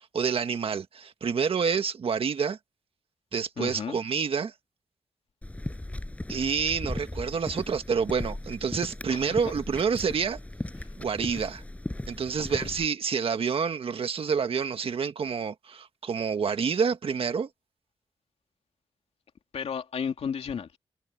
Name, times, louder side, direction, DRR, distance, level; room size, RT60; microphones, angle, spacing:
voice 1, 0.1-2.6 3.3-4.5 6.3-10.4 11.0-11.6 12.1-17.5, right 6 dB, 65° right, 1.6 m, -28 dB
voice 2, 3.6-4.0 9.1-9.4 10.8-10.9 12.4-12.7 19.5-20.8, left 7 dB, 85° left, 2.6 m, -34 dB
sound 1, 5.4-12.9, left 1 dB, 15° left, 7.1 m, -37 dB
wide cardioid pair, 125°, 10 cm